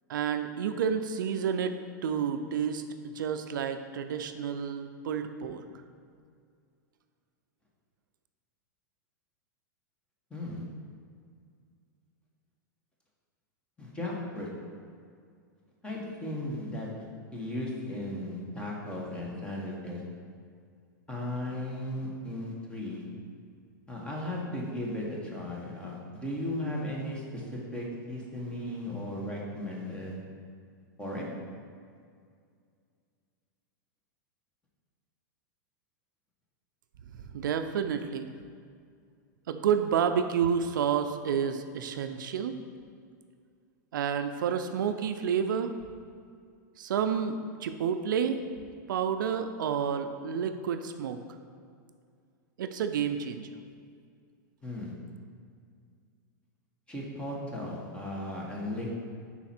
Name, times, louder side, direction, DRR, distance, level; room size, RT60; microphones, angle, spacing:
voice 1, 0.1-5.6 37.2-38.3 39.5-42.6 43.9-45.7 46.8-48.5 48.9-51.2 52.6-53.5, right 7 dB, 80° right, 8 dB, 0.4 m, -30 dB
voice 2, 10.3-10.6 13.8-14.5 15.8-16.9 17.3-20.0 21.1-23.1 23.9-30.2 31.0-31.3 54.6-54.9 56.9-59.0, left 1 dB, 10° left, -3 dB, 1.1 m, -36 dB
5.7 x 4.2 x 4.3 m, 2.2 s
hypercardioid pair, 130°, 10 cm